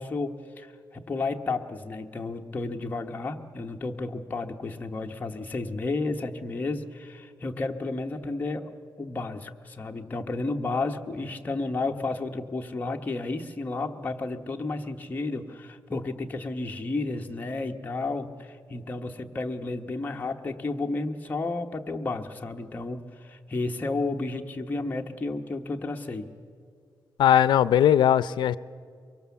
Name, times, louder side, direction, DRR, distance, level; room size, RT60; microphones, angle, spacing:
voice 1, 0.0-26.3, left 3 dB, 25° left, 2 dB, 1.0 m, -32 dB
voice 2, 27.2-28.6, left 10 dB, 90° left, 18 dB, 0.5 m, -19 dB
23.5 x 23.5 x 7.1 m, 2.2 s
wide cardioid pair, 145°, 8 cm